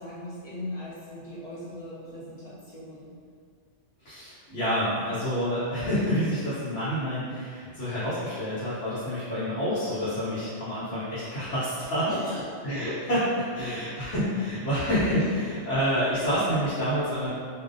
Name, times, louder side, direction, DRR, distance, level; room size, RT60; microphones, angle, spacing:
voice 1, 0.0-3.1 12.1-12.4, left 1 dB, 55° left, -10 dB, 0.4 m, -39 dB
voice 2, 4.0-12.2 12.6-17.3, equal, 75° left, -14 dB, 1.1 m, -28 dB
2.5 x 2.0 x 2.5 m, 2.1 s
omnidirectional pair, 1.2 m